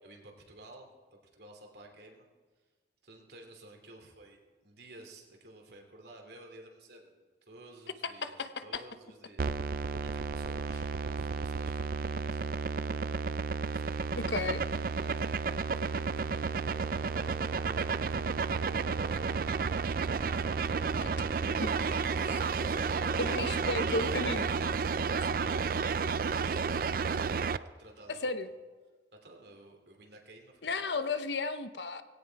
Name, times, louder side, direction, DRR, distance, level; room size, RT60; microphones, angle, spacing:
voice 1, 0.0-0.9 1.3-2.3 3.0-9.5 10.0-12.6 13.6-17.5 18.5-19.8 27.8-28.3 29.2-31.0, right 2 dB, 65° right, 2 dB, 3.0 m, -53 dB
voice 2, 8.2-8.8 14.3-14.6 21.0-21.1 21.6-21.8 23.2-24.5 28.2-28.5 30.6-32.0, left 3 dB, 75° left, 11 dB, 0.9 m, -33 dB
sound 1, 9.4-27.6, right 5 dB, 50° right, 0.4 m, -32 dB
18.5 x 16.5 x 4.7 m, 1.4 s
head